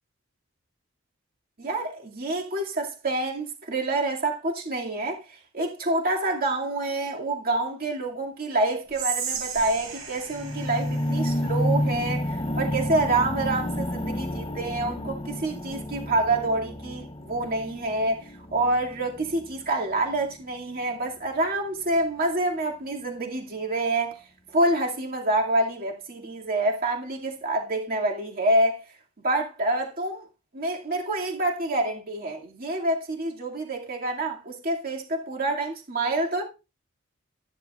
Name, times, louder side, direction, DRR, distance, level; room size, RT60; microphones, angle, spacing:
voice 1, 1.6-5.2 5.5-18.2 18.5-24.2 24.5-28.8 29.2-30.3 30.5-36.4, right 2 dB, 45° right, 2.3 m, -27 dB
Whispering, 8.9-12.1, right 7 dB, 90° right, 6.2 m, -35 dB
sound 1, 10.3-20.4 21.1-21.2, left 1 dB, 25° left, 1.0 m, -30 dB
13.0 x 11.0 x 2.4 m
head